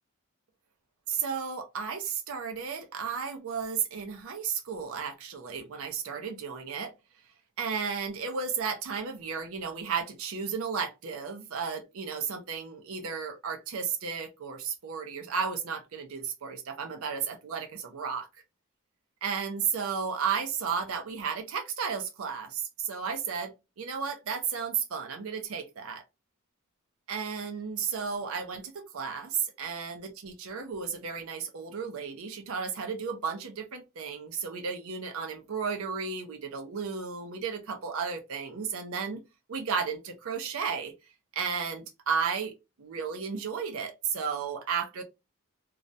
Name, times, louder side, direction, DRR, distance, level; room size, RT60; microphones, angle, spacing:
voice 1, 1.1-6.9 7.6-18.3 19.2-23.5 23.8-26.0 27.1-39.2 39.5-40.9 41.3-42.5 42.8-45.0, right 6 dB, 80° right, 0.5 m, -33 dB
2.3 x 2.1 x 2.6 m
head